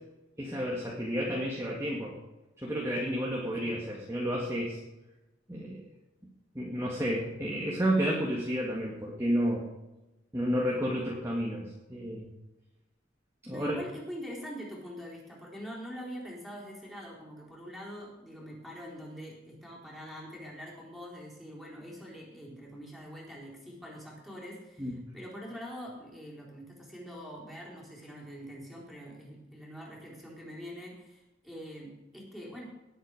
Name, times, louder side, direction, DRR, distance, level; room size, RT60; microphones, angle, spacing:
voice 1, 0.4-2.2 2.6-4.8 5.5-5.8 6.5-9.6 10.3-12.3 13.4-13.8 24.8-25.0, equal, 15° right, -3 dB, 1.9 m, -31 dB
voice 2, 3.2-3.8 13.5-32.6, equal, ahead, -4 dB, 4.2 m, -44 dB
18.5 x 8.1 x 4.9 m, 1.0 s
head